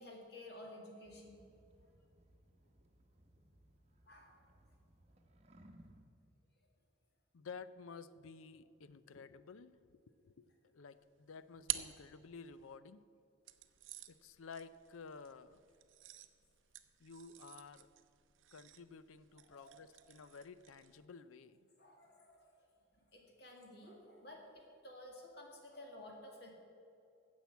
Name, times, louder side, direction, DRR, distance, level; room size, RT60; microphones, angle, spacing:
voice 1, 0.0-1.4 4.1-4.3 19.5-19.8 21.8-22.5 23.1-26.5, left 1 dB, 55° left, 0 dB, 2.0 m, -53 dB
sound 1, 1.0-6.0, right 1 dB, 30° right, 0.9 m, -64 dB
voice 2, 7.3-13.0 14.1-15.6 17.0-17.9 18.5-21.6, left 5 dB, 90° left, 15 dB, 0.5 m, -53 dB
sound 2, 11.0-12.8 13.5-21.1, right 14 dB, 75° right, 0.6 m, -49 dB
10.0 x 7.2 x 8.3 m, 2.5 s
head